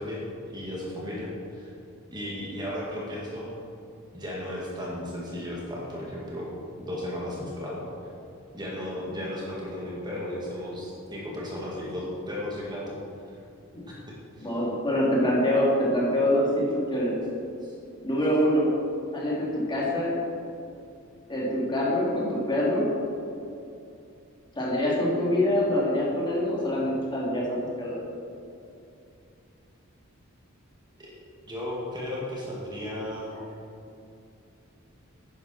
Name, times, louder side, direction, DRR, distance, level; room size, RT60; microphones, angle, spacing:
voice 1, 0.0-1.7 2.1-3.5 4.1-7.8 8.5-13.0 13.9-14.5 17.6-17.7 31.0-31.1 31.5-33.3, left 1 dB, 20° right, -5 dB, 2.0 m, -35 dB
voice 2, 14.4-16.6 16.9-17.2 18.0-18.7 19.1-20.1 21.3-22.9 24.5-28.0, left 1 dB, 20° left, -6 dB, 3.0 m, -25 dB
12.0 x 10.0 x 4.4 m, 2.7 s
head